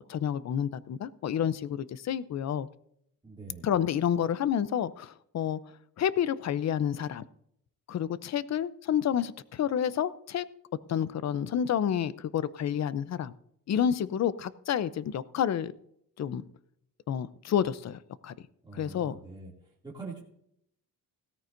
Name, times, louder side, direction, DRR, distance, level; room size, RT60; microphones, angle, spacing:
voice 1, 0.1-2.7 3.6-5.6 6.0-7.2 7.9-10.4 10.9-13.3 13.7-15.7 16.2-16.4 17.1-18.3 18.7-19.2, left 9 dB, 50° left, 16 dB, 0.6 m, -29 dB
voice 2, 3.2-3.7 18.6-19.5 19.8-20.2, right 3 dB, 15° right, -5 dB, 2.6 m, -43 dB
17.0 x 13.5 x 2.6 m, 0.73 s
cardioid pair, 125°, 35 cm